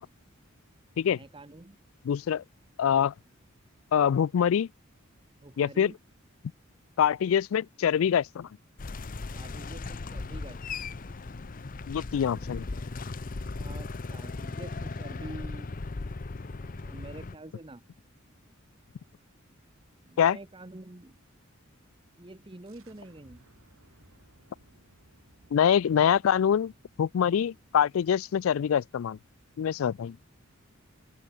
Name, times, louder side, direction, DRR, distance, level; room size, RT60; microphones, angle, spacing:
voice 1, 1.0-1.8 5.4-6.0 9.3-10.9 13.6-15.7 16.5-17.8 20.0-21.2 22.2-23.4, right 2 dB, 25° right, 1.0 m, -47 dB
voice 2, 2.1-2.4 2.8-3.1 3.9-4.7 5.6-5.9 7.0-8.5 11.9-12.6 20.2-20.4 25.5-26.7 27.0-29.2 29.6-30.2, left 8 dB, 75° left, 0.3 m, -24 dB
sound 1, 8.8-17.3, left 3 dB, 40° left, 0.7 m, -37 dB
sound 2, 22.7-28.2, right 1 dB, 85° right, 6.6 m, -62 dB
open air
head